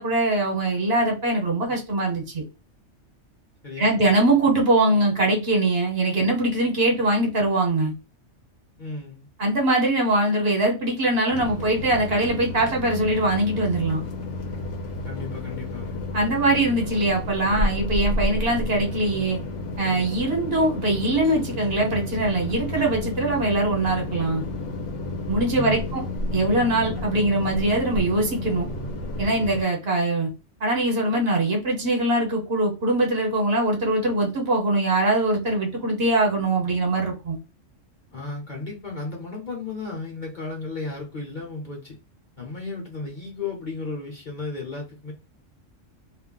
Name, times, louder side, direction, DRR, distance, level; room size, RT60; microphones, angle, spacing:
voice 1, 0.0-2.4 3.8-7.9 9.4-14.0 16.1-19.4 19.8-24.4 25.3-26.0 26.3-28.7 29.2-30.3 30.6-37.4, right 2 dB, 55° right, 1.1 m, -22 dB
voice 2, 3.6-4.2 8.8-9.3 15.0-16.0 25.5-26.0 38.1-41.9 42.4-45.1, left 3 dB, 40° left, 0.9 m, -34 dB
sound 1, 11.3-29.6, left 1 dB, 70° left, 1.0 m, -31 dB
2.5 x 2.1 x 3.8 m
omnidirectional pair, 1.3 m